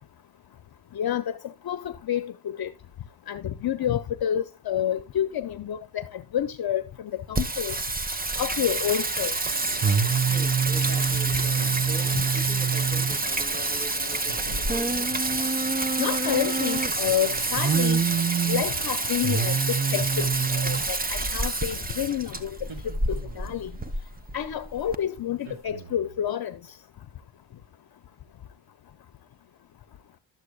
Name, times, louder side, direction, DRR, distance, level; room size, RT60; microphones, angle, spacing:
voice 1, 0.9-2.7 3.3-7.8 8.4-9.4 12.1-12.2 16.0-18.0 18.5-22.6 23.1-23.7 24.3-26.6, left 10 dB, 55° left, 0.8 m, -29 dB
Singing, 7.4-25.0, right 4 dB, 20° right, 0.9 m, -26 dB
sound 1, 9.5-19.5, right 1 dB, 60° right, 3.3 m, -48 dB
voice 2, 9.8-15.5, left 1 dB, 20° left, 2.2 m, -43 dB
sound 2, 11.2-12.1 14.3-14.9 17.0-17.8 19.9-20.8 22.6-23.6 25.4-26.2, right 3 dB, 75° right, 2.6 m, -43 dB
12.0 x 8.3 x 2.3 m
cardioid pair, 105°, 44 cm